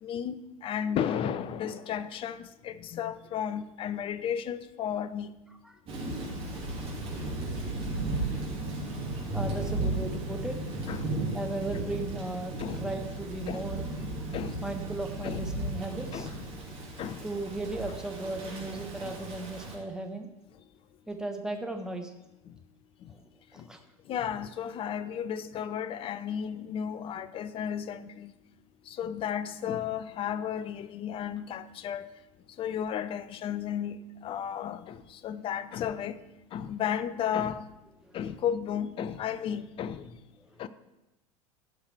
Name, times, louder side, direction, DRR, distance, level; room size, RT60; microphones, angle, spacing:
voice 1, 0.0-5.3 10.9-11.1 12.6-12.8 13.5-13.6 14.3-14.6 15.2-15.4 16.1-16.4 17.0-17.3 19.0-19.1 23.6-23.7 24.1-28.3 28.9-32.1 32.6-34.0 34.2-36.2 36.5-37.6 38.1-40.1 40.6-40.7, left 9 dB, 30° left, 0.6 m, -33 dB
Thunder / Rain, 5.9-19.8, right 2 dB, 30° right, 3.3 m, -35 dB
voice 2, 9.3-10.6 11.3-13.9 14.6-16.3 17.2-20.3 21.1-22.1 23.5-23.8 38.0-38.1, right 2 dB, 5° right, 1.2 m, -36 dB
15.0 x 5.6 x 4.7 m
figure-of-eight pair, 80°, 19 cm